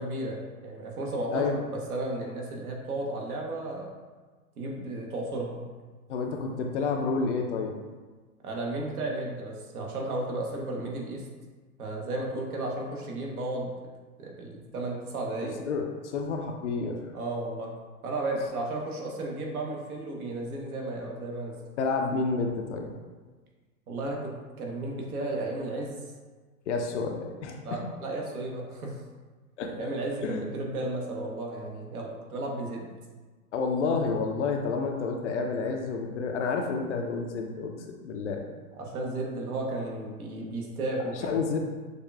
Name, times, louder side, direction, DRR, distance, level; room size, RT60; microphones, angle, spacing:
voice 1, 0.0-3.9 4.6-5.6 8.4-11.3 11.8-13.7 14.2-15.6 17.1-17.7 18.0-21.6 23.9-26.0 26.9-27.0 27.6-29.0 29.8-32.9 38.8-41.4, right 2 dB, 65° right, -1 dB, 1.1 m, -34 dB
voice 2, 6.1-7.7 15.6-17.0 21.8-22.9 26.7-27.8 29.6-29.9 30.2-30.4 33.5-38.4 41.2-41.6, left 4 dB, 50° left, 3 dB, 0.6 m, -29 dB
6.5 x 2.3 x 2.3 m, 1.4 s
figure-of-eight pair, 110°, 46 cm